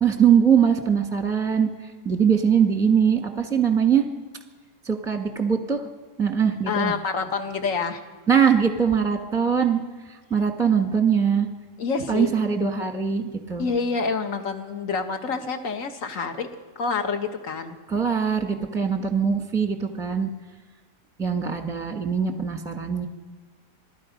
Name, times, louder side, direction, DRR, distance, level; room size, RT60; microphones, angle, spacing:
voice 1, 0.0-1.7 2.0-4.0 4.8-5.8 6.2-6.9 8.3-9.8 10.3-11.5 12.1-13.7 17.9-20.3 21.2-23.1, right 7 dB, ahead, 4 dB, 1.2 m, -21 dB
voice 2, 6.7-8.0 11.8-12.3 13.6-16.5 16.8-17.8, left 5 dB, 50° left, 6 dB, 1.7 m, -27 dB
26.5 x 19.0 x 5.2 m, 1.4 s
omnidirectional pair, 1.9 m